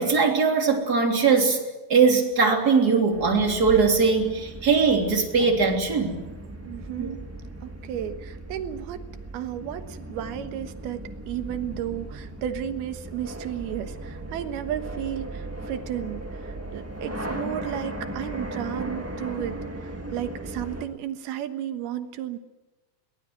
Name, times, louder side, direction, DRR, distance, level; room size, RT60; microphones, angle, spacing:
voice 1, 0.0-1.6 1.9-6.2 7.0-7.1, right 5 dB, 25° right, 2 dB, 3.4 m, -21 dB
sound 1, 3.1-20.9, right 1 dB, 10° right, 0.7 m, -37 dB
voice 2, 6.6-7.3 7.6-9.0 9.3-22.4, right 10 dB, 85° right, 9 dB, 3.2 m, -33 dB
22.0 x 19.0 x 9.3 m, 1.1 s
omnidirectional pair, 4.4 m